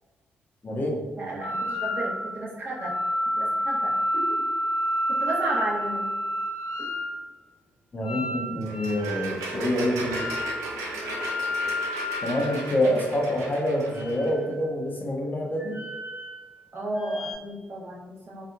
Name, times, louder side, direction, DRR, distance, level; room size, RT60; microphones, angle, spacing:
voice 1, 0.6-1.0 7.9-10.2 12.2-15.8, left 1 dB, 35° left, -1 dB, 0.6 m, -26 dB
voice 2, 1.1-2.9 3.4-4.4 5.2-6.1 16.7-18.4, right 1 dB, 45° right, -5 dB, 1.1 m, -33 dB
sound 1, 1.4-2.3 2.7-7.1 8.0-9.4 10.1-10.7 11.0-13.2 13.8-14.7 15.6-16.6 16.9-17.3, equal, 90° left, 0.7 m, -30 dB
sound 2, 8.6-14.3, right 2 dB, 75° right, 0.5 m, -36 dB
2.7 x 2.4 x 2.4 m, 1.2 s
hypercardioid pair, 45°, 5 cm